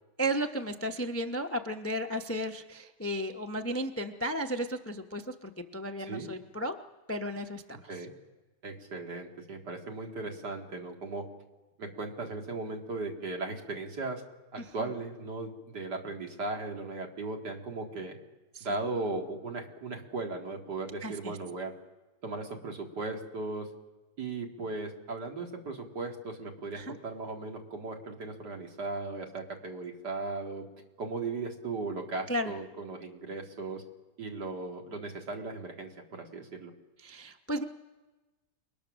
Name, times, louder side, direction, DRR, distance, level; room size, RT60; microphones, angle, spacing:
voice 1, 0.2-6.8 7.1-8.0 14.6-14.9 18.5-18.8 21.0-21.4 26.7-26.9 32.3-32.5 37.0-37.6, equal, 15° left, 6 dB, 0.5 m, -34 dB
voice 2, 8.6-11.3 11.8-14.2 14.5-18.2 18.6-21.7 22.2-23.7 24.2-30.7 31.0-33.8 34.2-36.7, right 3 dB, 75° right, 2 dB, 2.7 m, -37 dB
28.5 x 20.5 x 6.3 m, 1.2 s
omnidirectional pair, 1.8 m